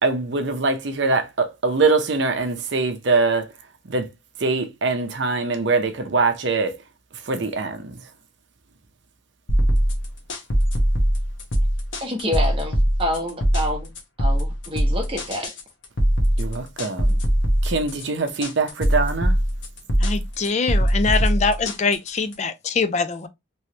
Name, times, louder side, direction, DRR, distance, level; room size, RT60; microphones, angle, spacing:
voice 1, 0.0-3.5 3.9-4.1 4.4-6.8 7.1-8.0 16.4-17.2 17.6-19.4, right 3 dB, 60° right, 0.6 m, -23 dB
sound 1, 9.5-22.3, equal, 70° left, 0.9 m, -21 dB
voice 2, 12.0-13.9 14.2-15.5, left 1 dB, 25° right, 1.0 m, -27 dB
voice 3, 20.0-23.3, left 4 dB, 35° left, 0.4 m, -23 dB
3.1 x 3.0 x 2.8 m
head